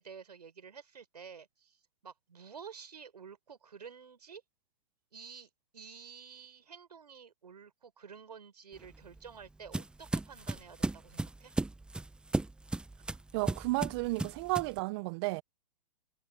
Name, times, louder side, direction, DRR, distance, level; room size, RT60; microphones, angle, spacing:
voice 1, 0.0-1.8 2.0-4.4 5.1-11.5, right 6 dB, 80° right, 5.6 m, -50 dB
sound 1, 8.8-14.8, right 2 dB, 5° right, 0.9 m, -36 dB
voice 2, 13.3-15.4, right 23 dB, 40° right, 1.0 m, -32 dB
hypercardioid pair, 120°, 20 cm